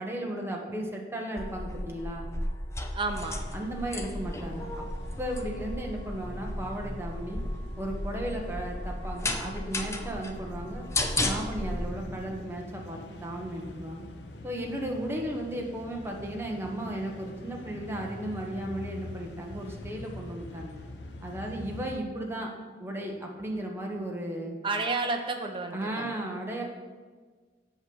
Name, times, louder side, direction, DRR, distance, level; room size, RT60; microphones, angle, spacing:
voice 1, 0.0-2.3 3.5-4.8 5.1-7.4 7.8-10.8 11.1-14.1 14.4-20.8 21.2-22.5 22.8-24.5 25.7-26.6, right 1 dB, 15° right, 0 dB, 1.2 m, -35 dB
sound 1, 1.4-11.9, left 1 dB, 15° left, 0.7 m, -34 dB
voice 2, 2.9-3.4 24.6-26.2, right 3 dB, 30° right, 3 dB, 1.0 m, -31 dB
sound 2, 3.0-22.0, left 2 dB, 70° left, 0.8 m, -45 dB
8.1 x 6.4 x 5.5 m, 1.4 s
head